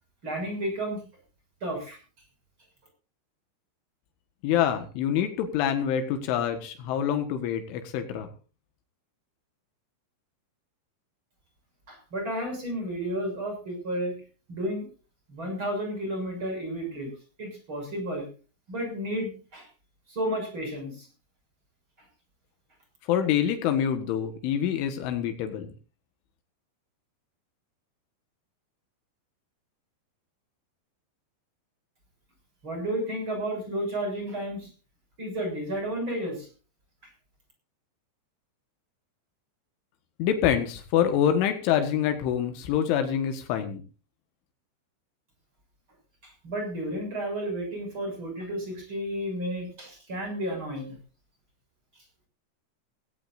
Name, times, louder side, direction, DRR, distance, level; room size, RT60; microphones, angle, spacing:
voice 1, 0.2-1.0 1.6-2.0 11.9-14.1 14.5-14.9 15.3-17.1 17.4-18.3 18.7-19.7 20.1-21.1 32.6-34.7 35.2-36.5 46.2-51.0 52.0-52.1, right 1 dB, 25° right, 3 dB, 7.1 m, -32 dB
voice 2, 4.4-8.3 23.1-25.7 40.2-43.8, left 9 dB, 90° left, 7 dB, 4.1 m, -26 dB
18.0 x 17.0 x 2.7 m, 0.35 s
omnidirectional pair, 5.4 m